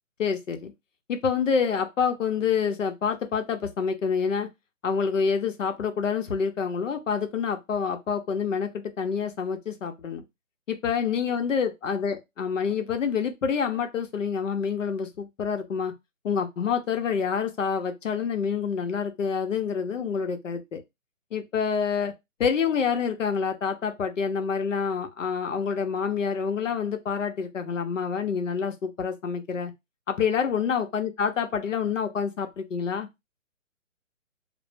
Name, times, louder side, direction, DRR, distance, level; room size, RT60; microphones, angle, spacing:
voice 1, 0.2-0.7 1.1-4.5 4.8-10.2 10.7-15.9 16.2-20.8 21.3-22.1 22.4-29.7 30.1-33.1, left 6 dB, 70° left, 0.7 m, -27 dB
2.1 x 2.1 x 3.2 m
figure-of-eight pair, 145°, 40 cm